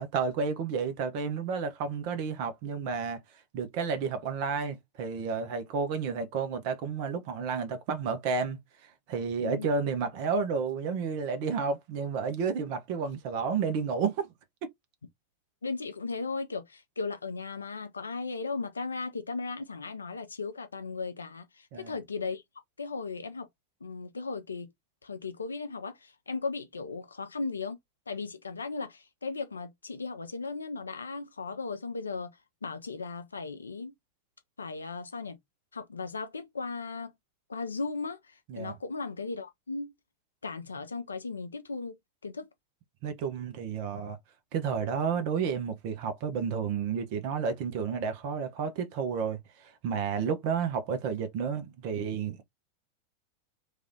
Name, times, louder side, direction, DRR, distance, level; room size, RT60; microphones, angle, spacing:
voice 1, 0.0-3.2 3.5-8.6 9.1-14.3 21.7-22.0 38.5-38.7 43.0-44.2 44.5-52.4, right 6 dB, 45° right, 0.8 m, -31 dB
voice 2, 15.6-22.4 22.8-23.5 23.8-24.7 25.0-27.8 28.1-32.3 32.6-33.9 34.6-35.4 35.7-37.1 37.5-39.9 40.4-41.9 42.2-42.5, left 4 dB, 75° left, 0.5 m, -36 dB
3.2 x 2.5 x 2.8 m
figure-of-eight pair, 90°, 0 cm